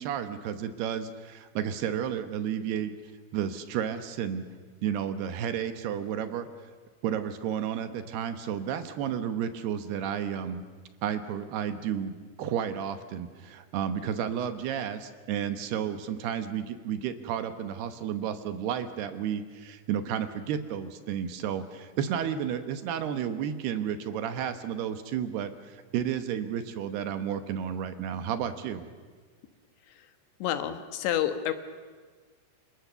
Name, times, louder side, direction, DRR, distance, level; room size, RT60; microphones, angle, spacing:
voice 1, 0.0-2.9 3.3-4.4 4.8-6.5 7.0-10.6 11.0-12.1 12.4-28.9, right 9 dB, 70° right, 9 dB, 3.0 m, -32 dB
voice 2, 30.4-31.5, left 11 dB, 80° left, 9 dB, 3.6 m, -28 dB
29.0 x 27.0 x 6.9 m, 1.5 s
omnidirectional pair, 5.1 m